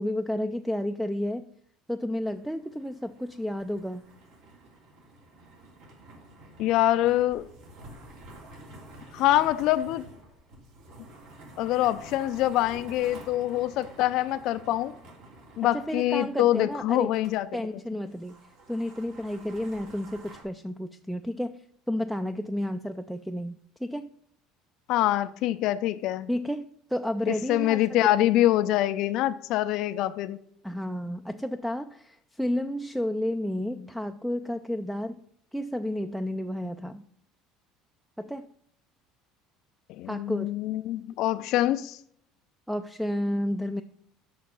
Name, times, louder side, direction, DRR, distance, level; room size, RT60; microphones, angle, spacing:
voice 1, 0.0-1.5 1.9-4.0 15.7-17.1 17.5-18.4 18.7-21.6 21.9-24.1 26.3-28.0 30.6-35.2 35.5-37.0 38.2-38.5 40.1-40.5 42.7-43.8, left 1 dB, ahead, 0.4 m, -31 dB
sound 1, 2.2-17.4 17.6-17.7 18.1-20.4, right 2 dB, 70° right, 3.1 m, -49 dB
voice 2, 6.6-7.5 9.1-10.0 11.6-14.9 15.6-17.5 24.9-26.3 27.3-30.4 39.9-42.0, left 14 dB, 65° left, 0.4 m, -25 dB
6.6 x 5.9 x 5.5 m
cardioid pair, 125°, 0 cm